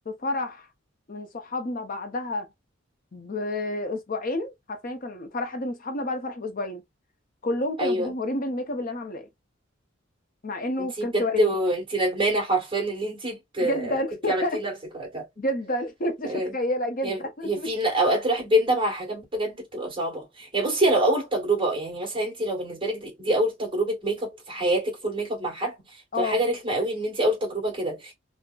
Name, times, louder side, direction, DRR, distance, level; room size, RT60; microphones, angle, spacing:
voice 1, 0.1-0.7 1.1-2.5 3.1-6.8 7.4-9.3 10.4-11.6 13.6-14.6 15.4-17.7 26.1-26.4, left 1 dB, 45° left, 0.7 m, -30 dB
voice 2, 7.8-8.1 10.8-14.0 14.3-15.2 16.2-16.5 17.0-17.2 17.4-25.8 26.2-28.1, right 1 dB, 25° right, 1.9 m, -26 dB
3.7 x 2.1 x 2.4 m
head